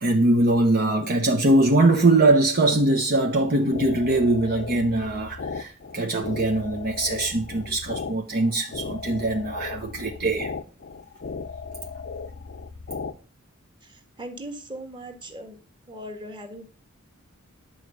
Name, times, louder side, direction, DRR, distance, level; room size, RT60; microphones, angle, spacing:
voice 1, 0.0-10.5, right 2 dB, 45° right, 1.1 m, -22 dB
sound 1, 3.3-13.1, left 4 dB, 50° left, 0.6 m, -36 dB
voice 2, 14.2-15.6 15.9-16.6, right 1 dB, 20° right, 1.9 m, -38 dB
10.5 x 4.8 x 7.9 m
head